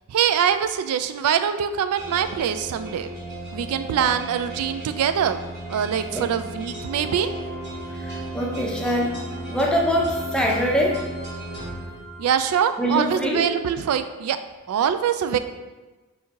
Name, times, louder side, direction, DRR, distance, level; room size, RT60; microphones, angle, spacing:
voice 1, 0.1-3.1 3.5-5.4 5.7-7.3 12.2-14.4 14.7-15.4, right 8 dB, 85° right, 11 dB, 0.3 m, -23 dB
sound 1, 1.9-12.6, right 2 dB, 50° right, 1.0 m, -35 dB
voice 2, 7.9-9.2 9.5-11.0 12.8-13.4, equal, 5° left, -2 dB, 0.6 m, -23 dB
4.4 x 2.7 x 3.6 m, 1.2 s
head